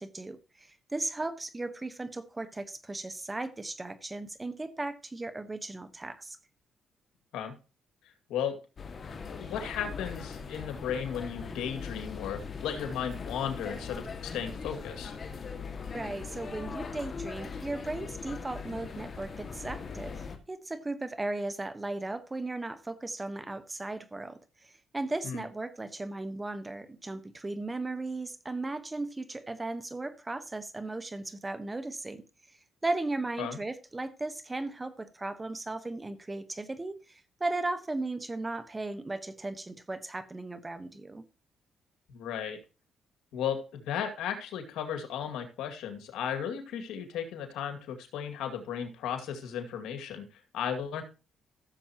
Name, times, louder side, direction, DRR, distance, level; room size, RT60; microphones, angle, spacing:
voice 1, 0.0-6.4 15.9-32.2 32.8-41.2, right 2 dB, 20° right, 1.2 m, -36 dB
sound 1, 8.8-20.4, left 5 dB, 45° left, 1.9 m, -40 dB
voice 2, 9.3-15.2 25.2-25.5 33.4-33.6 42.1-42.6 43.3-50.2 50.5-51.0, left 8 dB, 85° left, 2.2 m, -35 dB
15.0 x 7.2 x 2.9 m
cardioid pair, 90°, 0 cm